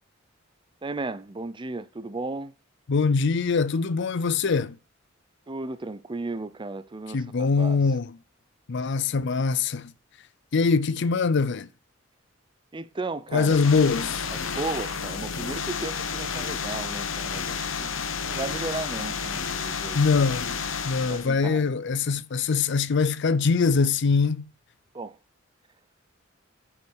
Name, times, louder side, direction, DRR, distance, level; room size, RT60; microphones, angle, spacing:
voice 1, 0.8-2.5 5.5-7.8 12.7-13.6 14.3-20.0 21.1-21.7 24.9-25.2, right 3 dB, 25° right, 0.5 m, -35 dB
voice 2, 2.9-4.8 7.1-8.1 8.7-9.9 10.5-11.7 13.3-14.3 19.9-20.6 20.8-24.4, left 4 dB, 60° left, 0.5 m, -23 dB
sound 1, 13.4-21.3, left 6 dB, 85° left, 1.1 m, -31 dB
8.0 x 5.8 x 6.2 m
head